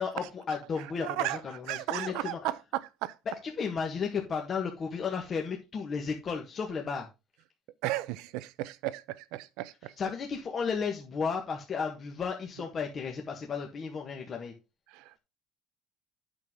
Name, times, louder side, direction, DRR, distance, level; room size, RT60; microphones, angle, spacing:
voice 1, 0.0-2.4 3.3-7.1 10.0-14.5, left 5 dB, 40° left, 1.5 m, -34 dB
voice 2, 1.0-1.4 1.7-3.2 7.8-10.0 14.9-15.1, right 16 dB, 80° right, 0.6 m, -34 dB
8.7 x 6.2 x 3.7 m
cardioid pair, 110°, 0 cm